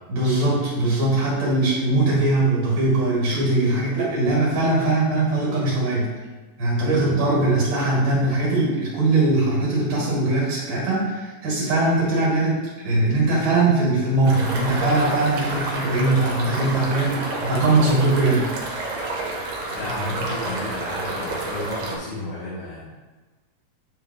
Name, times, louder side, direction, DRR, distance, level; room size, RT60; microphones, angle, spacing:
voice 1, 0.1-6.1 6.6-12.6 12.8-18.5, right 2 dB, 55° right, -6 dB, 3.0 m, -21 dB
voice 2, 6.9-7.3 19.7-22.8, left 2 dB, 70° left, -12 dB, 3.0 m, -32 dB
sound 1, 14.2-22.0, right 2 dB, 80° right, 2.7 m, -29 dB
9.4 x 3.7 x 3.0 m, 1.3 s
omnidirectional pair, 3.9 m